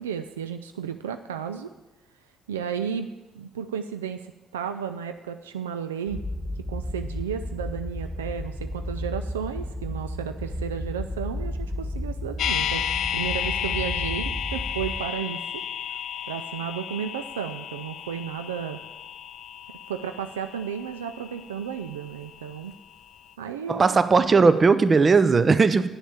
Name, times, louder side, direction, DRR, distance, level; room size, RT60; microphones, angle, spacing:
voice 1, 0.0-1.7 2.5-3.1 3.3-6.2 6.7-12.8 13.1-15.6 16.3-18.8 19.9-22.8 23.4-24.0, right 8 dB, 90° right, 8 dB, 0.3 m, -33 dB
sound 1, 6.1-15.0, left 1 dB, 10° left, 1.3 m, -33 dB
sound 2, 12.4-22.4 22.7-22.8, left 9 dB, 65° left, 0.4 m, -32 dB
voice 2, 23.7-25.9, right 4 dB, 40° right, 13 dB, 0.7 m, -18 dB
8.9 x 7.2 x 6.9 m, 1.1 s
hypercardioid pair, 45°, 0 cm